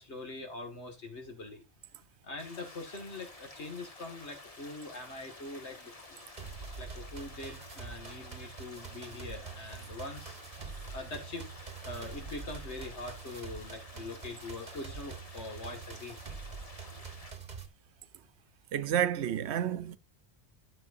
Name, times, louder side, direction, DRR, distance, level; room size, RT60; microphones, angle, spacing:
voice 1, 0.0-1.6 2.2-5.9 6.8-16.2 17.0-17.1, left 2 dB, 85° left, 2.3 m, -43 dB
sound 1, 2.4-17.3, left 2 dB, 35° left, 1.5 m, -51 dB
sound 2, 6.4-17.7, right 5 dB, 40° right, 1.3 m, -45 dB
voice 2, 18.7-20.0, right 10 dB, 80° right, 0.9 m, -30 dB
13.5 x 6.6 x 2.6 m
omnidirectional pair, 1.1 m